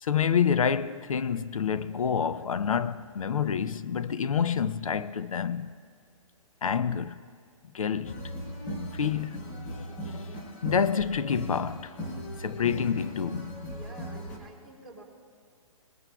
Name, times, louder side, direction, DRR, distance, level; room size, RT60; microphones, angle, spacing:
voice 1, 0.0-5.7 6.6-7.2 7.7-8.1 8.9-9.4 10.0-11.9 12.4-13.5, left 7 dB, 75° left, 0.5 m, -28 dB
sound 1, 8.0-14.4, equal, 40° left, 3.6 m, -38 dB
voice 2, 13.7-15.0, right 2 dB, ahead, 3.2 m, -49 dB
21.0 x 20.0 x 2.3 m
hypercardioid pair, 135°, 18 cm